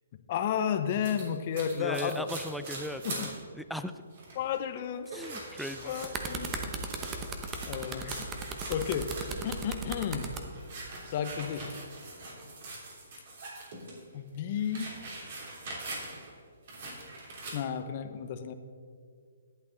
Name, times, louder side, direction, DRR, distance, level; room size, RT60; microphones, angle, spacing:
voice 1, 0.3-2.3 3.0-3.3 4.4-5.1 5.8-6.6 7.7-8.3 8.7-9.1 9.4-10.4 11.1-11.8 14.1-14.9 17.5-18.5, left 8 dB, 40° left, 10 dB, 0.7 m, -32 dB
sound 1, 1.0-3.4 3.8-3.9 4.1-4.5 5.0-9.7 10.1-14.0 14.3-16.3 16.7-17.5, right 2 dB, 50° right, 3.0 m, -43 dB
voice 2, 1.7-3.9 5.1-5.9, equal, ahead, 8 dB, 0.4 m, -38 dB
sound 2, 5.8-10.4 11.3-11.5, right 4 dB, 20° right, 0.9 m, -37 dB
11.5 x 8.5 x 3.9 m, 2.1 s
hypercardioid pair, 155°, 0 cm